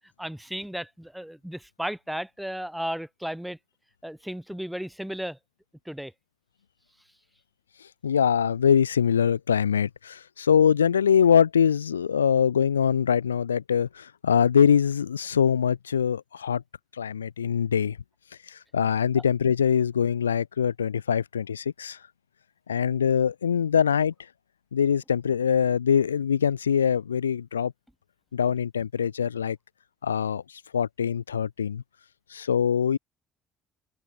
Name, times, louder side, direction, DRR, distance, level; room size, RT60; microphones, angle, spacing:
voice 1, 0.0-3.6 4.0-5.4 5.9-6.1 19.1-19.2, equal, 5° right, 5.5 m, -34 dB
voice 2, 8.0-16.6 17.0-18.0 18.7-22.0 22.7-24.1 24.7-27.7 28.3-29.6 30.0-30.4 30.7-31.8 32.3-33.0, left 7 dB, 80° left, 0.7 m, -23 dB
open air
figure-of-eight pair, 50°, 0 cm